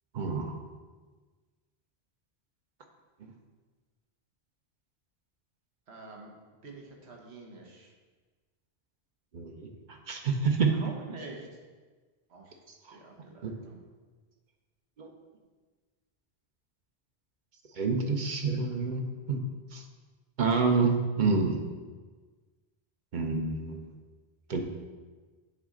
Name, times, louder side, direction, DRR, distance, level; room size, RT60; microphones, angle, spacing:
voice 1, 0.1-0.6 9.3-10.9 12.9-13.0 13.4-13.5 15.0-15.1 17.7-19.4 19.7-19.8 20.4-21.6 23.1-23.8 24.5-24.6, right 4 dB, 50° right, 3 dB, 0.8 m, -28 dB
voice 2, 5.9-6.3 6.6-7.9 10.7-11.5 12.3-12.6 12.9-13.8, right 3 dB, 85° right, 0 dB, 1.4 m, -46 dB
9.2 x 4.1 x 3.7 m, 1.4 s
omnidirectional pair, 1.1 m